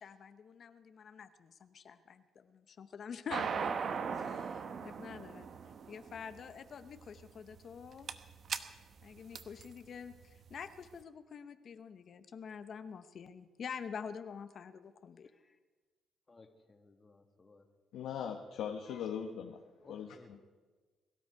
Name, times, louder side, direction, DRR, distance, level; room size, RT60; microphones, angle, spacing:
voice 1, 0.0-5.5 5.9-8.1 9.0-15.3, left 6 dB, 55° left, 10 dB, 0.8 m, -47 dB
sound 1, 3.3-10.8, right 6 dB, 55° right, 0.9 m, -39 dB
voice 2, 15.2-15.6 16.3-17.7 19.8-20.4, left 3 dB, 30° left, 4 dB, 1.8 m, -60 dB
voice 3, 17.9-19.6 19.9-20.4, left 8 dB, 85° left, 3 dB, 1.0 m, -40 dB
22.5 x 12.5 x 4.7 m, 1.4 s
cardioid pair, 90°, 0 cm